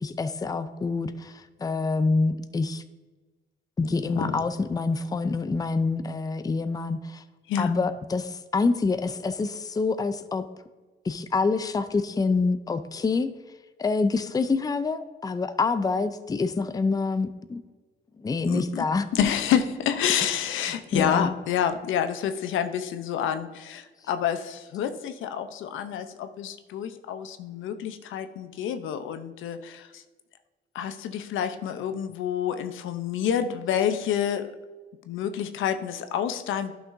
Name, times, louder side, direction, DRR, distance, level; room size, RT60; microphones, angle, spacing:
voice 1, 0.0-2.8 3.8-7.2 7.6-10.4 11.0-13.3 13.8-17.6 18.2-19.1 20.9-21.3, left 4 dB, 20° left, 11 dB, 0.5 m, -26 dB
voice 2, 4.1-4.4 7.5-7.7 18.4-18.9 19.1-30.0 30.7-34.5 35.1-36.7, left 9 dB, 80° left, 9 dB, 0.7 m, -28 dB
11.0 x 6.1 x 2.6 m, 1.3 s
cardioid pair, 90°, 20 cm